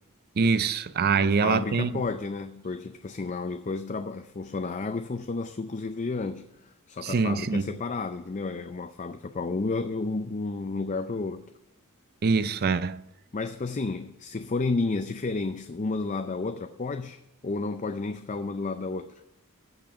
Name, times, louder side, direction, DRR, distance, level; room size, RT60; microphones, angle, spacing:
voice 1, 0.4-1.9 7.0-7.6 12.2-13.0, right 4 dB, 45° right, 0.4 m, -24 dB
voice 2, 1.2-11.5 13.3-19.1, left 3 dB, 35° left, 0.5 m, -32 dB
15.5 x 6.1 x 5.0 m
head